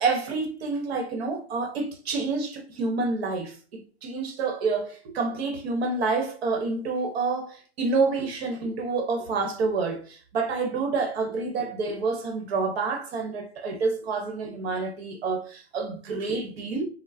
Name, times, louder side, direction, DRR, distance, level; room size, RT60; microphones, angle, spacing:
voice 1, 0.0-16.9, right 4 dB, 65° right, 1.0 m, -28 dB
4.3 x 2.0 x 2.7 m
hypercardioid pair, 160°, 33 cm